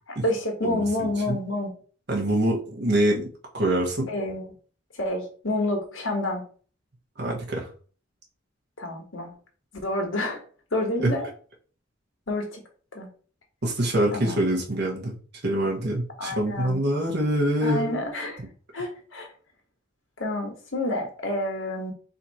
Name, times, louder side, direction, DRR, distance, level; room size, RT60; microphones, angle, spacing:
voice 1, 0.1-1.7 4.1-4.5 5.0-6.4 8.8-9.3 9.8-10.4 10.7-11.3 12.3-12.6 12.9-13.1 14.1-14.4 16.2-16.8 17.6-18.4 18.7-19.3 20.2-21.9, left 1 dB, 85° left, 2 dB, 1.6 m, -28 dB
voice 2, 0.6-1.4 2.1-3.3 3.5-4.1 7.2-7.7 11.0-11.1 13.6-15.2 15.4-17.9, right 1 dB, 60° right, -1 dB, 1.5 m, -25 dB
4.2 x 2.9 x 4.2 m, 0.40 s
head